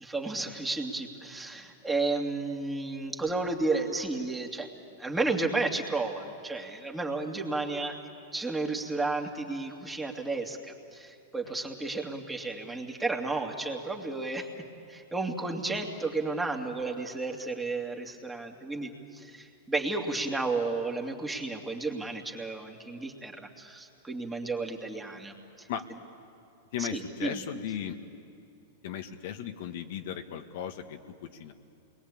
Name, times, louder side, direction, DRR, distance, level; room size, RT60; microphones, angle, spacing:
voice 1, 0.0-4.7 5.0-8.0 8.3-14.5 14.9-25.7 26.8-27.4, right 3 dB, 10° right, 1 dB, 2.5 m, -32 dB
voice 2, 26.7-28.0 28.8-31.5, left 9 dB, 65° left, 5 dB, 1.7 m, -36 dB
29.0 x 21.5 x 8.7 m, 2.6 s
hypercardioid pair, 120°, 0 cm